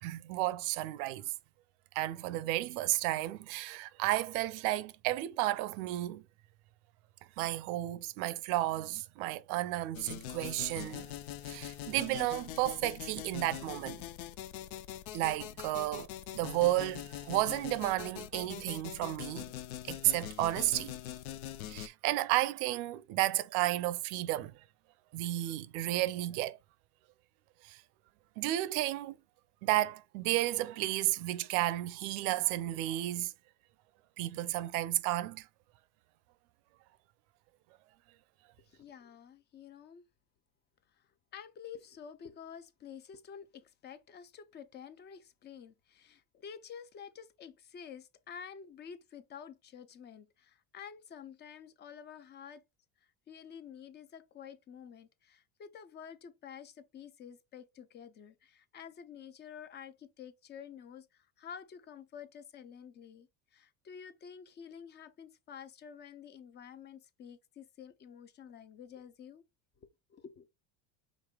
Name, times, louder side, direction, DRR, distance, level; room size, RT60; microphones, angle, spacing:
voice 1, 0.0-1.3 1.9-6.2 7.4-11.1 11.4-14.1 15.1-16.1 16.3-19.5 19.8-20.9 21.7-24.6 25.1-26.6 27.6-27.8 28.4-29.2 29.6-33.3 34.2-35.5, right 16 dB, 85° right, 0.6 m, -32 dB
sound 1, 9.9-21.9, left 12 dB, 85° left, 0.6 m, -43 dB
voice 2, 38.7-40.0 41.3-52.6 53.3-69.4 69.8-70.5, left 7 dB, 25° left, 0.4 m, -50 dB
5.2 x 3.6 x 2.3 m
cardioid pair, 135°, 43 cm